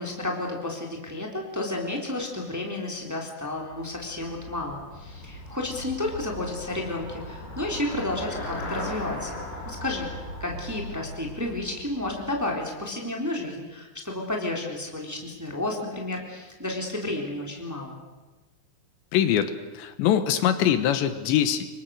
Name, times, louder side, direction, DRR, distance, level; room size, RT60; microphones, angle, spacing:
voice 1, 0.0-18.0, left 2 dB, 5° right, 1 dB, 3.0 m, -32 dB
Traffic noise roadway noise / Bicycle, 3.6-12.8, left 1 dB, 45° left, 5.6 m, -38 dB
voice 2, 19.1-21.7, left 10 dB, 80° left, 11 dB, 3.3 m, -23 dB
28.5 x 23.5 x 6.6 m, 1.2 s
omnidirectional pair, 5.3 m